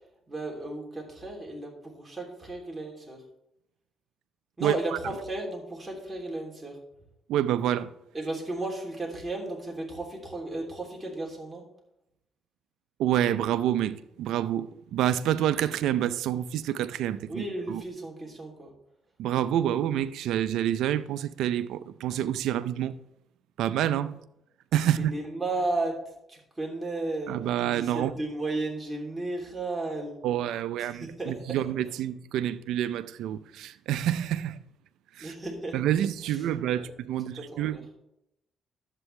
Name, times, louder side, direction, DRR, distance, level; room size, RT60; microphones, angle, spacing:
voice 1, 0.3-3.2 4.6-6.8 8.1-11.6 17.3-18.7 25.0-25.9 26.3-27.4 27.6-30.2 30.8-31.6 35.2-35.8 36.3-36.4 36.8-36.9 37.3-37.8, right 2 dB, 20° right, 3.2 m, -34 dB
voice 2, 7.3-7.9 13.0-17.8 19.2-23.0 23.6-24.2 24.7-25.1 27.3-28.1 30.2-34.6 35.2-35.3 35.7-37.8, right 11 dB, 85° right, 0.5 m, -28 dB
11.0 x 8.2 x 3.3 m
cardioid pair, 90°, 0 cm